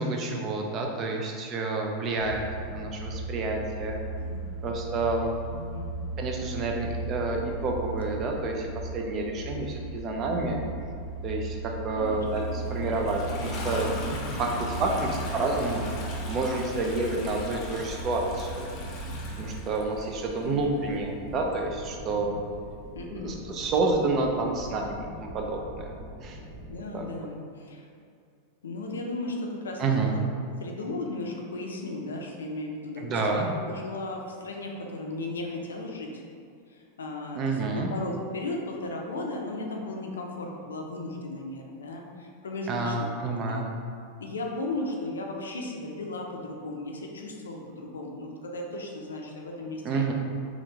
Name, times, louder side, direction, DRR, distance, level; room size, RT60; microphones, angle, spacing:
voice 1, 0.0-4.0 4.6-5.3 6.2-10.6 11.2-15.9 16.3-18.7 19.4-22.3 23.1-25.9 26.2-26.4 26.9-27.1 29.8-30.1 33.0-33.5 37.3-37.9 42.7-43.7 49.8-50.1, right 3 dB, 40° right, 1 dB, 0.5 m, -29 dB
sound 1, 2.1-19.6, right 2 dB, 20° left, 0.9 m, -36 dB
voice 2, 4.2-4.5 5.5-5.9 11.9-12.2 12.8-13.1 14.5-15.0 20.4-20.6 22.1-22.2 22.9-23.4 26.7-27.9 28.6-30.2 30.6-36.2 36.7-43.6 44.2-50.1, left 2 dB, 85° left, 0 dB, 0.4 m, -36 dB
Toilet flush, 12.0-20.5 21.5-21.6, left 2 dB, 45° left, 0.6 m, -40 dB
sound 2, 12.9-26.8, right 1 dB, 10° right, 0.9 m, -44 dB
3.4 x 2.4 x 2.8 m, 2.3 s
hypercardioid pair, 100°, 0 cm